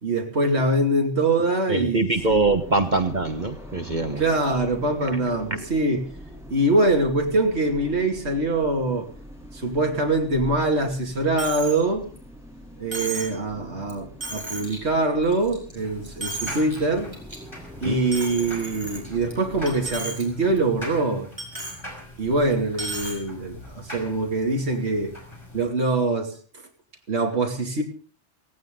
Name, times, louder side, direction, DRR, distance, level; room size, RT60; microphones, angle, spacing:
voice 1, 0.0-2.5 4.2-6.1 6.5-9.1 9.5-12.1 12.8-17.1 17.8-21.3 22.2-25.1 25.5-26.3 27.1-27.8, right 2 dB, 60° right, 1 dB, 2.9 m, -23 dB
voice 2, 1.7-4.2 17.8-18.0, right 3 dB, 40° right, 7 dB, 1.4 m, -23 dB
sound 1, 2.1-20.0, equal, ahead, 7.5 m, -43 dB
Coin (dropping), 11.4-11.8 12.2-12.3 12.9-13.4 13.9-14.0 14.2-14.8 15.2-15.7 16.0-16.8 17.1-17.4 18.1-19.3 19.7-20.2 20.6-20.7 21.4-21.8 22.7-23.2, right 2 dB, 20° right, 5.7 m, -34 dB
sound 2, 15.8-25.7, left 1 dB, 25° left, 6.0 m, -42 dB
18.0 x 17.5 x 3.9 m, 0.41 s
omnidirectional pair, 1.2 m